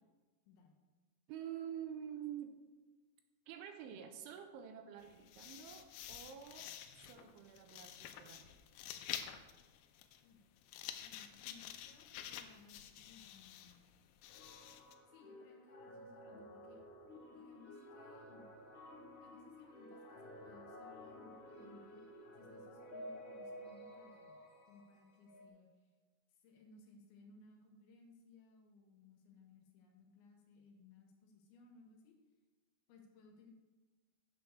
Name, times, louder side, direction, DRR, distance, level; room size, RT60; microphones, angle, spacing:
voice 1, 1.3-2.5 3.5-8.6, right 9 dB, 85° right, 6 dB, 3.1 m, -48 dB
sound 1, 5.0-14.9, left 11 dB, 90° left, 3.2 m, -50 dB
voice 2, 11.0-13.8 15.1-16.8 17.3-18.5 19.2-22.0 22.3-25.9 26.3-32.2 32.9-33.5, left 3 dB, 75° left, 2 dB, 3.6 m, -62 dB
sound 2, 14.3-25.5, equal, 50° left, 1.5 m, -53 dB
9.0 x 6.9 x 6.5 m, 1.3 s
omnidirectional pair, 5.6 m